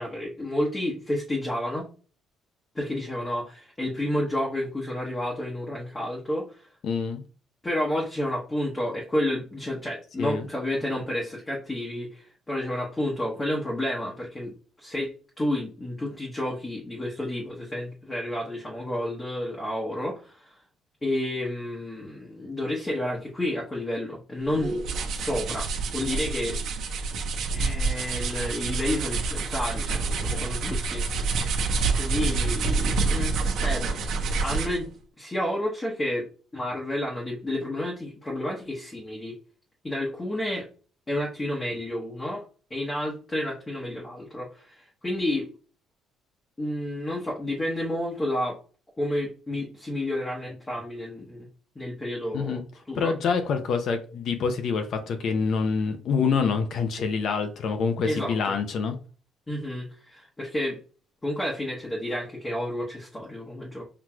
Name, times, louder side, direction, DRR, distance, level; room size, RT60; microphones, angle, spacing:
voice 1, 0.0-1.9 2.7-6.7 7.6-20.5 21.0-24.8 25.1-26.6 27.5-31.0 32.0-34.9 35.2-36.3 36.5-39.3 39.8-40.7 41.1-42.4 42.7-45.5 46.6-48.6 49.0-51.5 51.7-52.6 52.9-53.1 58.0-58.5 59.5-60.8 61.2-63.8, left 1 dB, 15° left, -4 dB, 1.0 m, -30 dB
voice 2, 6.8-7.2 10.2-10.5 30.3-30.4 52.3-52.6 52.9-59.0, left 5 dB, 55° left, 7 dB, 0.6 m, -26 dB
sound 1, 24.5-34.9, right 4 dB, 65° right, 0.9 m, -27 dB
5.8 x 3.1 x 2.3 m, 0.38 s
cardioid pair, 135°, 0 cm